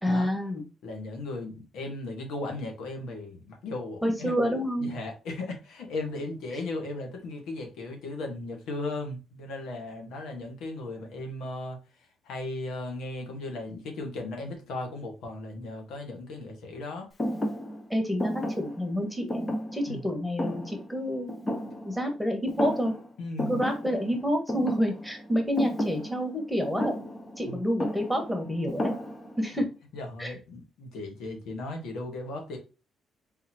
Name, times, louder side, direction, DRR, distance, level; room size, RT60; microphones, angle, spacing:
voice 1, 0.0-0.6 4.0-4.9 17.9-19.4 19.7-21.3 21.8-22.9 23.5-27.0 27.4-28.9 29.4-29.7 30.2-30.3, equal, ahead, 1.4 m, -28 dB
voice 2, 0.8-4.3 4.8-17.1 19.9-20.1 23.2-23.6 27.4-27.6 29.9-32.6, left 2 dB, 85° left, 1.6 m, -36 dB
Thump thud, 17.2-22.2 22.5-23.1 23.4-29.5, equal, 30° left, 1.0 m, -33 dB
4.1 x 3.7 x 2.9 m
cardioid pair, 90°, 0 cm